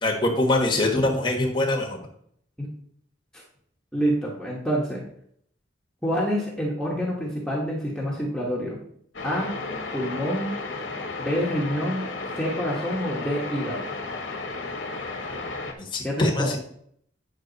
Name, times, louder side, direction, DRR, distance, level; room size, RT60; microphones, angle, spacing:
voice 1, 0.0-2.0 15.9-16.6, left 2 dB, 25° left, -1 dB, 1.3 m, -23 dB
voice 2, 3.9-5.0 6.0-8.8 9.2-9.5 9.9-10.5 11.2-13.9 16.0-16.5, equal, 5° left, -4 dB, 1.3 m, -27 dB
sound 1, 9.1-15.7, left 3 dB, 75° left, 1.4 m, -33 dB
8.6 x 6.1 x 4.0 m, 0.67 s
head